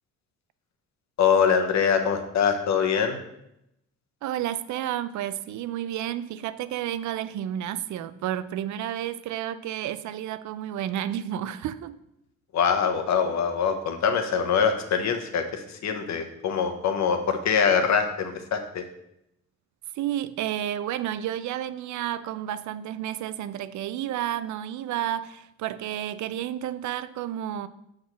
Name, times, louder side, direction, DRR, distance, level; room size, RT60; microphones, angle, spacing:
voice 1, 1.2-3.2 12.5-18.8, left 6 dB, 65° left, 1.0 m, -24 dB
voice 2, 4.2-12.0 19.9-27.7, right 11 dB, 70° right, 0.5 m, -31 dB
6.2 x 3.7 x 6.1 m
cardioid pair, 90°, 30 cm